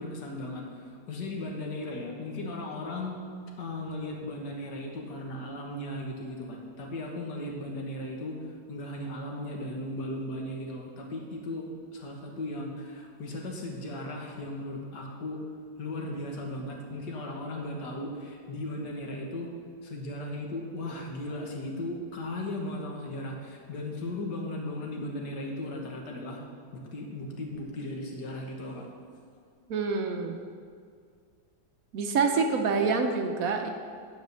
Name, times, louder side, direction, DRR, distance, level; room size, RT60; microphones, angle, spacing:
voice 1, 0.0-3.2 3.6-8.4 8.7-15.4 15.8-19.5 19.8-26.4 26.7-28.9, left 1 dB, 80° left, 0 dB, 1.9 m, -36 dB
voice 2, 29.7-30.4 31.9-33.7, right 4 dB, 65° right, 4 dB, 1.1 m, -26 dB
9.6 x 4.9 x 6.7 m, 2.2 s
omnidirectional pair, 1.8 m